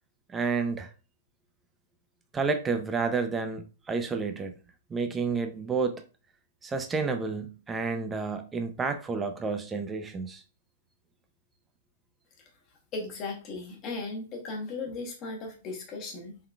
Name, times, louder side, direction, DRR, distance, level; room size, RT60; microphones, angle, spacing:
voice 1, 0.3-0.9 2.3-4.5 4.9-6.0 6.6-10.4, right 4 dB, 10° right, 0.4 m, -30 dB
voice 2, 12.9-16.4, left 3 dB, 20° left, 0.9 m, -36 dB
3.7 x 3.6 x 2.2 m
hypercardioid pair, 170°, 0 cm